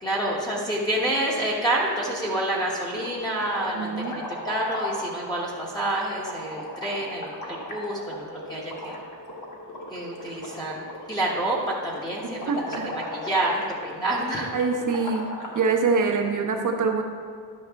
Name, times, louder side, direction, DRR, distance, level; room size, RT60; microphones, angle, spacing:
voice 1, 0.0-9.0 9.9-10.8 11.1-14.5, right 1 dB, 10° left, -6 dB, 1.1 m, -28 dB
sound 1, 2.0-2.6 2.9-15.7, left 1 dB, 45° left, 1.6 m, -37 dB
voice 2, 3.7-4.2 12.5-12.9 14.5-15.2 15.5-17.0, right 4 dB, 50° right, 3 dB, 1.0 m, -24 dB
11.0 x 6.3 x 3.5 m, 2.2 s
wide cardioid pair, 150°, 41 cm